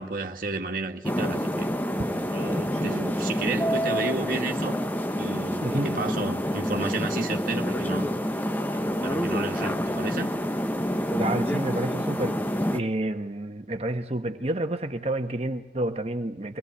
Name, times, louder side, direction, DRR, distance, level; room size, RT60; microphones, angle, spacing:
voice 1, 0.0-1.7 2.3-4.8 5.1-8.1 8.7-10.3, right 2 dB, 50° right, 1.9 m, -32 dB
sound 1, 1.0-12.8, equal, 10° left, 1.1 m, -28 dB
voice 2, 2.7-3.1 5.6-5.9 11.1-12.4 12.7-16.6, right 1 dB, 35° right, 1.4 m, -29 dB
24.5 x 19.5 x 8.4 m
head